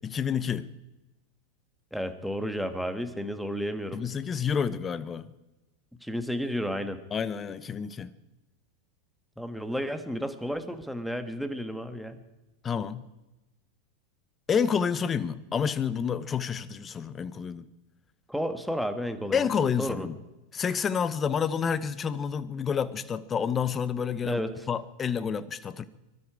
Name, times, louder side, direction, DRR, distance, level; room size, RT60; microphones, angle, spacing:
voice 1, 0.0-0.7 3.9-5.2 7.1-8.1 12.6-13.0 14.5-17.6 19.3-20.2 20.5-24.4 24.7-25.8, left 7 dB, 25° left, 15 dB, 0.9 m, -29 dB
voice 2, 1.9-4.0 6.0-7.0 9.4-12.2 18.3-19.5 19.8-20.1 24.2-24.7, equal, ahead, 8 dB, 1.5 m, -32 dB
23.5 x 12.5 x 4.9 m, 1.0 s
hypercardioid pair, 95°, 0 cm